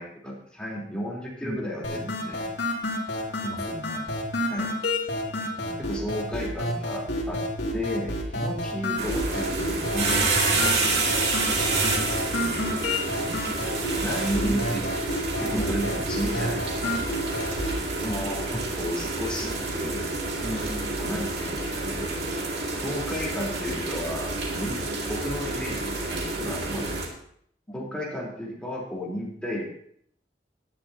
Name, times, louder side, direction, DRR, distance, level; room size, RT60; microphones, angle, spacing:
voice 1, 0.0-2.5 4.5-4.7 5.8-7.4 7.7-10.8 13.2-13.4 14.0-14.8 15.4-16.9 18.8-20.1 21.0-22.1 22.8-24.8 25.1-26.9 27.7-29.6, equal, 5° left, -4 dB, 3.8 m, -33 dB
sound 1, 1.8-17.8, left 1 dB, 75° left, 2.6 m, -30 dB
voice 2, 3.4-4.1 5.4-5.8 12.4-12.7 14.4-14.6 15.5-15.7 18.0-18.7 20.4-20.9 22.7-22.9 24.9-25.0 27.7-27.8, equal, 20° left, -2 dB, 2.6 m, -35 dB
sound 2, 9.0-27.1, right 3 dB, 70° right, 2.5 m, -29 dB
17.5 x 10.5 x 2.9 m, 0.65 s
head